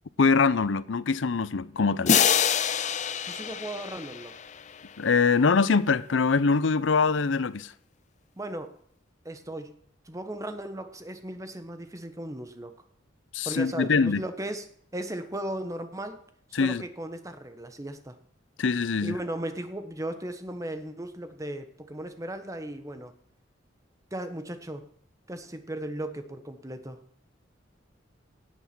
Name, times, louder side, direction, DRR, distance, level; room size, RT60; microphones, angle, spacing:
voice 1, 0.2-2.2 5.0-7.7 13.3-14.2 16.5-16.8 18.6-19.2, left 4 dB, 90° left, 0.6 m, -23 dB
sound 1, 2.1-4.9, left 8 dB, 40° left, 0.6 m, -26 dB
voice 2, 3.2-4.3 8.4-8.7 9.2-9.7 10.1-12.7 13.4-14.7 14.9-16.2 16.5-18.2 19.0-23.1 24.1-24.9 25.3-27.0, right 1 dB, 15° right, 1.2 m, -36 dB
17.0 x 8.1 x 6.1 m
head